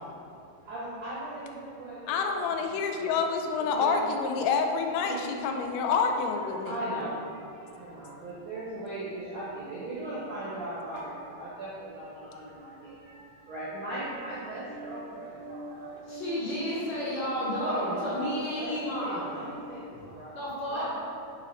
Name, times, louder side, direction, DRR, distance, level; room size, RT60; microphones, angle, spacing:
voice 1, 0.6-2.6 2.9-3.1 3.6-4.0 5.0-5.4 6.4-16.0 16.4-16.8 17.3-20.3 20.7-20.8, right 1 dB, 70° right, -8 dB, 1.2 m, -38 dB
voice 2, 2.1-6.7, left 5 dB, 85° left, 4 dB, 2.1 m, -28 dB
sound 1, 14.2-19.6, right 1 dB, 90° right, 1.5 m, -43 dB
voice 3, 16.1-19.3 20.3-20.8, equal, 60° left, -9 dB, 1.4 m, -32 dB
5.5 x 4.0 x 4.2 m, 2.6 s
omnidirectional pair, 3.6 m